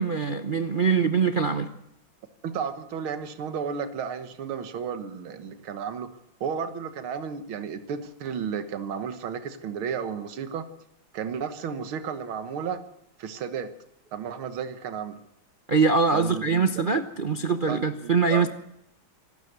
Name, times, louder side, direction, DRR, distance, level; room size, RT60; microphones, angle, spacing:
voice 1, 0.0-1.7 15.7-18.5, right 5 dB, 60° right, 7 dB, 0.5 m, -23 dB
voice 2, 2.4-6.1 6.4-10.7 11.1-12.8 13.2-13.7 14.1-15.2 16.1-16.6 17.7-18.5, right 7 dB, 80° right, 10 dB, 2.1 m, -33 dB
26.0 x 12.5 x 8.0 m, 0.82 s
omnidirectional pair, 2.3 m